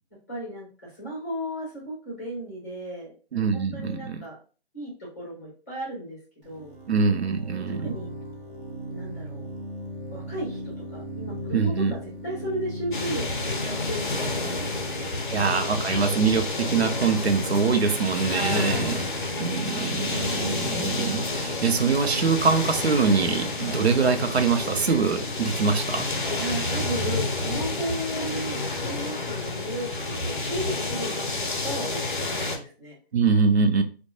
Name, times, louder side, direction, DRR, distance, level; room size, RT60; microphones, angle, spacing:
voice 1, 0.3-3.1 3.5-4.4 4.7-6.7 7.8-8.1 8.9-9.5 10.1-12.0 12.2-15.2 18.2-18.9 26.3-33.0, right 1 dB, 15° left, -5 dB, 0.9 m, -35 dB
voice 2, 3.3-4.2 6.9-7.9 11.5-11.9 15.3-19.0 19.4-26.1 33.1-33.8, right 5 dB, 75° right, 7 dB, 0.5 m, -24 dB
String Pad, 6.4-24.0, right 1 dB, 50° right, 0.9 m, -39 dB
sound 1, 12.9-32.6, left 3 dB, 50° left, 0.5 m, -30 dB
2.9 x 2.1 x 2.3 m, 0.37 s
figure-of-eight pair, 165°, 32 cm